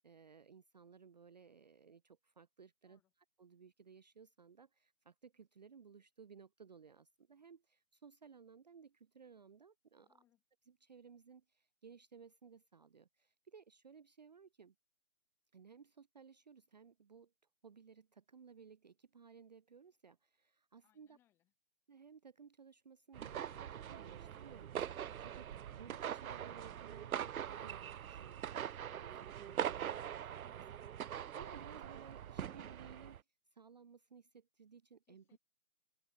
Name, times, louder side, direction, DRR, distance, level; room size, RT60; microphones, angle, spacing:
voice 1, 0.0-3.0 3.4-10.2 10.7-14.7 15.5-17.3 17.6-21.2 21.9-33.2 33.5-35.2, right 6 dB, 30° right, 0.8 m, -59 dB
voice 2, 10.0-10.4 20.8-21.5 35.1-35.4, left 13 dB, 5° left, 1.2 m, -76 dB
sound 1, 23.1-33.2, right 10 dB, 75° right, 0.6 m, -43 dB
hypercardioid pair, 160°, 43 cm